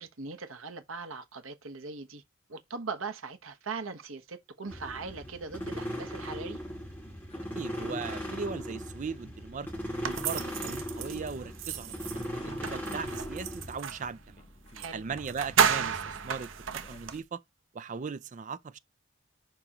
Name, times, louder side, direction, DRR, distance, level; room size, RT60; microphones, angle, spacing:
voice 1, 0.0-2.2 2.5-6.6 14.7-15.0, right 4 dB, 85° right, 1.2 m, -40 dB
sound 1, 4.7-13.8, equal, 10° left, 2.4 m, -38 dB
Digging East of the Fault Line, 4.9-17.2, left 1 dB, 30° left, 1.2 m, -52 dB
voice 2, 7.5-9.7 10.0-14.4 14.9-16.5 16.9-17.4 17.7-18.8, right 5 dB, 40° right, 0.4 m, -38 dB
sound 2, 10.0-14.1 14.8-14.9 15.2-17.2, right 7 dB, 70° right, 0.8 m, -32 dB
11.0 x 3.7 x 3.0 m
head